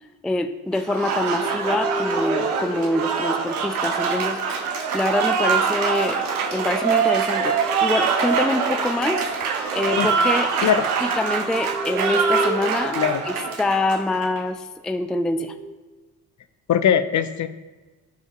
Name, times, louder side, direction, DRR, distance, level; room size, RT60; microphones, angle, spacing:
voice 1, 0.0-4.4 4.9-9.2 9.7-10.5 11.0-15.5, left 2 dB, ahead, 9 dB, 0.4 m, -25 dB
Applause, 0.7-14.4, right 6 dB, 85° right, 0.8 m, -24 dB
sound 1, 1.4-4.2 6.2-13.9 15.3-15.7, right 1 dB, 20° right, 1.0 m, -33 dB
voice 2, 16.7-17.5, left 9 dB, 40° left, 12 dB, 0.6 m, -20 dB
14.0 x 5.1 x 2.5 m, 1.3 s
figure-of-eight pair, 40°, 44 cm